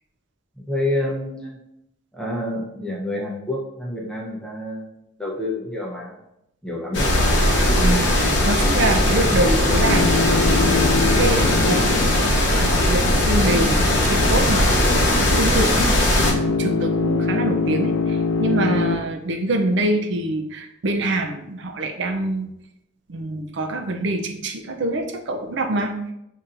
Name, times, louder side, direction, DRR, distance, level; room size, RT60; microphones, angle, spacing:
voice 1, 0.6-1.6 2.1-4.9 5.2-6.2 6.6-7.1, left 1 dB, 5° left, -3 dB, 0.8 m, -28 dB
sound 1, 6.9-16.3, left 1 dB, 60° left, 0.8 m, -19 dB
voice 2, 7.8-11.9 12.2-12.3 12.6-22.5 23.1-26.1, right 1 dB, 60° right, 3 dB, 0.4 m, -25 dB
sound 2, 9.9-13.2 16.2-19.0, left 4 dB, 80° left, 0.4 m, -23 dB
6.9 x 2.7 x 2.5 m, 0.82 s
head